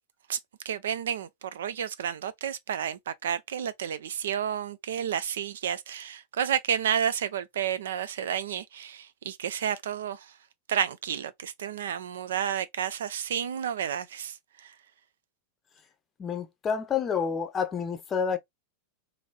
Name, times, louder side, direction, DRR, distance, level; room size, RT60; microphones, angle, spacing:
voice 1, 0.7-10.3 10.7-14.7, right 9 dB, 60° right, 0.4 m, -31 dB
voice 2, 16.2-18.4, left 6 dB, 25° left, 0.6 m, -29 dB
3.0 x 2.6 x 2.5 m
figure-of-eight pair, 90°, 0 cm